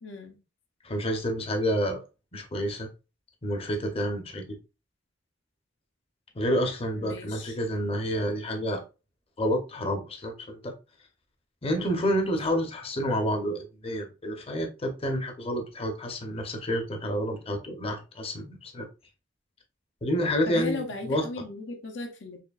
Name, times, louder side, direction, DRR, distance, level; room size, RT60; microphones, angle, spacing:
voice 1, 0.0-0.4 6.9-7.6 20.5-22.4, left 3 dB, 70° left, 2 dB, 0.8 m, -37 dB
voice 2, 0.8-2.0 2.3-2.9 3.4-4.6 6.3-8.8 9.4-10.7 11.6-18.9 20.0-21.2, equal, 30° left, 4 dB, 0.8 m, -29 dB
4.3 x 3.0 x 2.4 m, 0.30 s
head